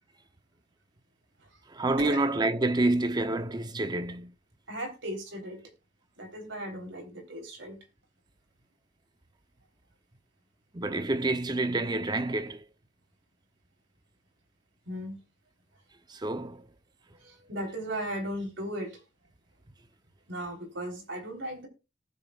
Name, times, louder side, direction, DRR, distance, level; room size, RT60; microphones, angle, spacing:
voice 1, 1.7-4.3 10.7-12.6 16.1-16.6, right 2 dB, 25° right, 0.7 m, -28 dB
voice 2, 4.7-5.6 6.2-7.8 14.9-15.2 17.1-19.0 20.3-21.7, right 1 dB, 85° right, 3.6 m, -36 dB
19.0 x 7.2 x 2.4 m
head